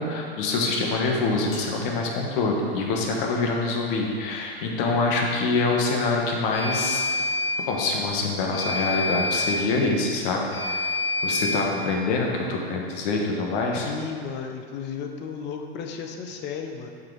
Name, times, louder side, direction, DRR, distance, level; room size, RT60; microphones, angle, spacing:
voice 1, 0.0-7.0 7.7-10.8 11.2-13.9, left 3 dB, 60° left, 0 dB, 1.4 m, -25 dB
sound 1, 1.5-1.7 6.5-7.6 8.5-9.6 10.5-11.6, left 2 dB, 80° left, 1.9 m, -27 dB
voice 2, 13.8-16.9, left 6 dB, 35° left, 4 dB, 0.9 m, -34 dB
7.6 x 4.9 x 4.8 m, 2.2 s
hypercardioid pair, 115°, 30 cm